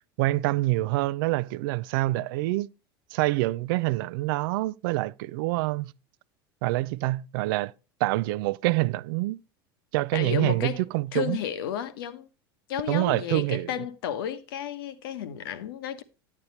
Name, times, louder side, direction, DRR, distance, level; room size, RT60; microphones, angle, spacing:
voice 1, 0.2-2.7 3.1-5.9 6.6-7.7 8.0-9.4 9.9-11.4 12.9-13.7, right 19 dB, 65° right, 0.4 m, -26 dB
voice 2, 10.1-12.3 12.7-16.0, left 9 dB, 75° left, 1.0 m, -32 dB
9.6 x 9.0 x 2.8 m
hypercardioid pair, 85°, 12 cm